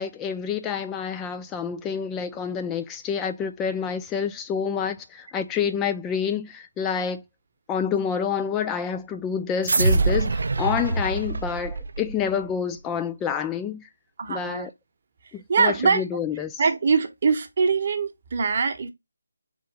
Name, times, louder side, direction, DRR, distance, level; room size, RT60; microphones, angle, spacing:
voice 1, 0.0-7.2 7.7-13.9 14.3-14.7 15.3-16.6, left 7 dB, 10° left, 0.4 m, -28 dB
sound 1, 9.6-12.4, right 3 dB, 60° right, 0.4 m, -24 dB
voice 2, 14.2-14.7 15.5-16.0 16.6-18.9, right 5 dB, 40° right, 0.8 m, -23 dB
3.8 x 2.6 x 4.5 m
figure-of-eight pair, 160°, 0 cm